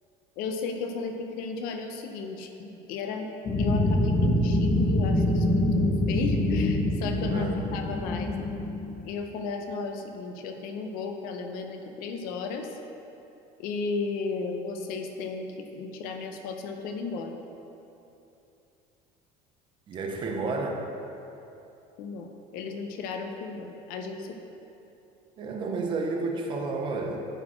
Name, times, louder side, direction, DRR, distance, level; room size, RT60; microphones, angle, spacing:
voice 1, 0.4-3.3 3.6-8.3 9.0-12.8 13.6-17.4 22.0-24.4, left 4 dB, 65° left, 4 dB, 0.7 m, -34 dB
sound 1, 3.4-9.0, left 1 dB, 25° left, 0.9 m, -25 dB
voice 2, 7.3-7.6 19.9-20.9 25.4-27.3, right 3 dB, 30° right, 2 dB, 0.6 m, -31 dB
10.0 x 4.4 x 4.3 m, 2.9 s
cardioid pair, 175°, 16 cm